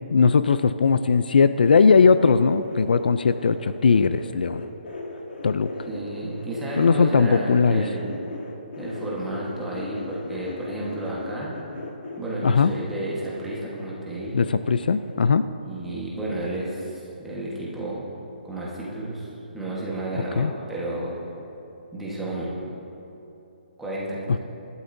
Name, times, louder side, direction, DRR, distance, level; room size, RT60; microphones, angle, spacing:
voice 1, 0.0-4.6 5.4-5.7 6.8-7.8 12.4-12.7 14.3-15.5 20.4-20.5, left 5 dB, 60° left, 12 dB, 0.4 m, -19 dB
sound 1, 0.7-7.4 7.6-16.7 16.9-17.4 17.7-17.8, left 2 dB, 85° left, 2.6 m, -39 dB
voice 2, 5.9-8.2 8.8-11.5 12.2-14.5 15.6-18.0 18.4-21.2 21.9-22.6 23.8-24.4, right 1 dB, 5° right, -7 dB, 1.3 m, -32 dB
21.0 x 12.0 x 2.7 m, 2.9 s
hypercardioid pair, 180°, 6 cm